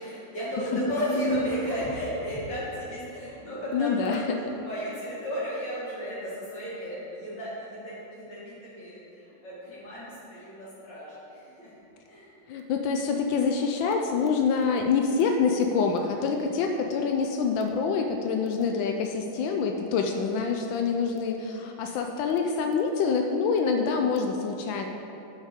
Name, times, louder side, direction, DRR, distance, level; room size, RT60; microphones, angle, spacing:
voice 1, 0.0-11.7 12.1-12.3, equal, 65° left, -9 dB, 2.7 m, -33 dB
voice 2, 3.7-4.4 12.5-24.9, left 5 dB, 80° left, 4 dB, 1.3 m, -26 dB
9.3 x 7.2 x 3.7 m, 2.9 s
omnidirectional pair, 2.1 m